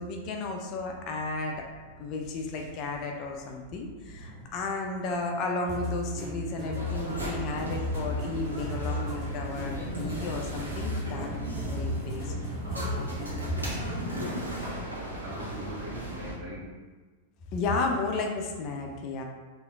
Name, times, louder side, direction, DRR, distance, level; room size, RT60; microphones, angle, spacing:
voice 1, 0.0-1.6 2.0-11.3 11.6-12.3 12.8-13.1 17.5-19.2, left 3 dB, 40° left, 2 dB, 0.4 m, -33 dB
sound 1, 0.6-16.7, right 1 dB, 15° left, 1.5 m, -50 dB
sound 2, 5.7-13.9, left 1 dB, 30° right, 0.9 m, -36 dB
sound 3, 6.7-16.4, right 1 dB, 80° right, 0.6 m, -36 dB
voice 2, 14.6-16.7 18.0-18.1, equal, 55° right, -6 dB, 1.1 m, -41 dB
3.4 x 2.5 x 2.3 m, 1.3 s
figure-of-eight pair, 90°, 0 cm